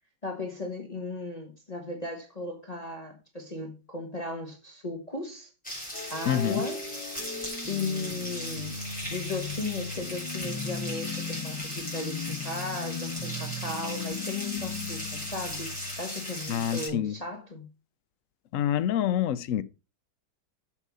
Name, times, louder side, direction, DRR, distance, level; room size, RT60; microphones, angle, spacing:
voice 1, 0.2-5.5 6.1-6.8 7.2-7.4 7.7-8.8 9.1-17.7, left 2 dB, 25° left, 1.5 m, -36 dB
sound 1, 5.6-16.9, equal, 5° left, 5.0 m, -38 dB
sound 2, 5.9-16.1, left 5 dB, 80° left, 2.1 m, -37 dB
voice 2, 6.3-6.6 16.5-17.2 18.5-19.6, left 10 dB, 65° left, 0.8 m, -27 dB
7.2 x 6.8 x 5.4 m
omnidirectional pair, 1.8 m